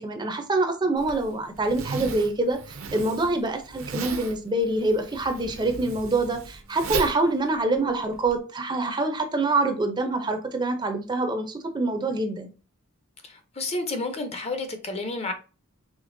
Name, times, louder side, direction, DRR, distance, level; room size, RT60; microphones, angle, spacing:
voice 1, 0.0-12.5, right 2 dB, 20° right, 0.5 m, -25 dB
Zipper (clothing), 1.0-8.4, right 4 dB, 65° right, 0.6 m, -36 dB
voice 2, 13.6-15.3, left 2 dB, 30° left, 0.6 m, -30 dB
5.0 x 3.3 x 2.6 m
head